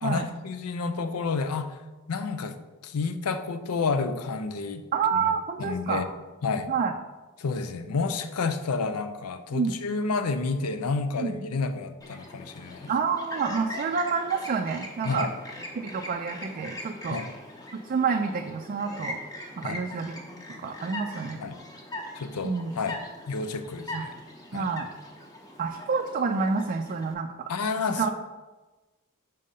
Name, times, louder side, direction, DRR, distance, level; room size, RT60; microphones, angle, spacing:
voice 1, 0.0-1.7 2.1-2.5 2.8-4.8 5.2-5.3 5.6-6.1 6.4-6.7 7.4-12.9 15.0-15.3 17.1-17.3 19.6-19.8 21.4-21.6 22.1-23.0 23.3-24.1 24.5-24.7 27.5-28.1, left 4 dB, 75° left, 9 dB, 0.5 m, -30 dB
voice 2, 4.9-6.0 6.7-6.9 9.5-9.8 11.2-11.3 12.9-15.3 15.8-17.2 17.8-19.2 19.6-20.1 20.6-21.4 22.4-22.7 23.9-24.0 24.5-24.9 25.6-27.5 28.0-28.1, right 5 dB, 40° right, 4 dB, 0.3 m, -28 dB
Chirp tweet, 12.0-27.1, left 1 dB, 15° left, 0.8 m, -41 dB
5.4 x 3.7 x 5.3 m, 1.2 s
head